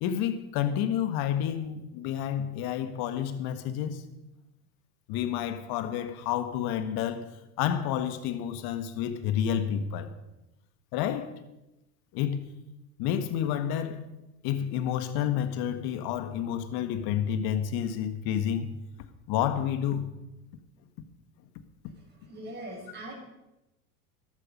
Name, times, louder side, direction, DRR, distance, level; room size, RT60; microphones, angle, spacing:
voice 1, 0.0-4.0 5.1-7.3 7.6-10.1 10.9-11.3 12.1-12.5 13.0-14.1 14.4-18.7 19.3-20.1, left 9 dB, 55° left, 1.7 m, -29 dB
voice 2, 21.9-23.1, right 1 dB, 20° right, 6.4 m, -42 dB
14.0 x 12.0 x 5.4 m
hypercardioid pair, 95°, 45 cm